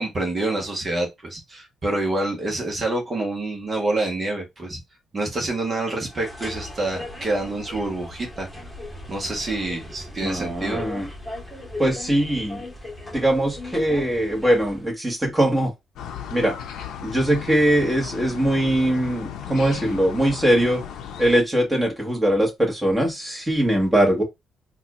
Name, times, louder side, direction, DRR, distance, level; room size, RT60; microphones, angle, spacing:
voice 1, 0.0-4.8 5.1-8.5 9.1-10.8, right 2 dB, 35° right, 1.3 m, -27 dB
sound 1, 6.1-14.9, left 1 dB, 5° left, 1.6 m, -38 dB
voice 2, 10.2-11.1 11.8-12.6 13.1-15.7 16.3-16.5 17.0-20.8 21.2-24.2, right 1 dB, 15° right, 1.7 m, -21 dB
sound 2, 16.0-21.4, left 8 dB, 80° left, 0.6 m, -36 dB
4.1 x 2.6 x 2.5 m
cardioid pair, 90°, 0 cm